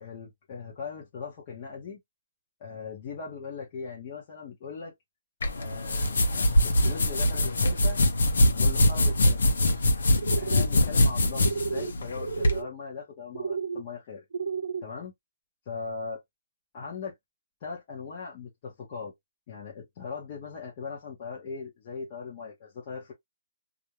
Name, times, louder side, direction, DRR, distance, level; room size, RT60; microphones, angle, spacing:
voice 1, 0.0-2.0 2.6-4.9 5.6-8.0 8.5-9.5 10.4-14.2 14.8-15.1 15.7-16.2 16.7-17.1 17.6-19.1 19.5-23.1, left 5 dB, 30° left, 0.7 m, -39 dB
sound 1, 5.4-12.6, left 1 dB, 75° left, 0.7 m, -23 dB
sound 2, 10.2-10.7 11.4-11.9 12.2-12.7 13.3-13.8 14.3-14.9, right 5 dB, 70° right, 0.5 m, -32 dB
2.4 x 2.1 x 2.9 m
hypercardioid pair, 175°, 0 cm